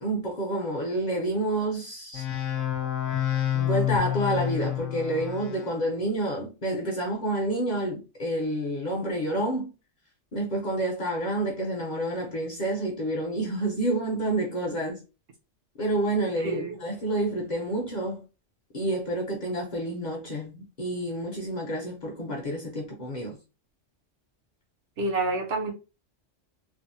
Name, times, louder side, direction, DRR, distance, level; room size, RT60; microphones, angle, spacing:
voice 1, 0.0-2.3 3.5-9.7 10.3-15.0 15.8-18.3 18.7-23.4, right 1 dB, 45° left, 0.6 m, -29 dB
sound 1, 2.1-5.8, left 12 dB, 85° left, 1.0 m, -28 dB
voice 2, 16.4-16.8 25.0-25.7, right 2 dB, 65° right, 1.0 m, -28 dB
3.4 x 2.1 x 2.6 m
omnidirectional pair, 1.3 m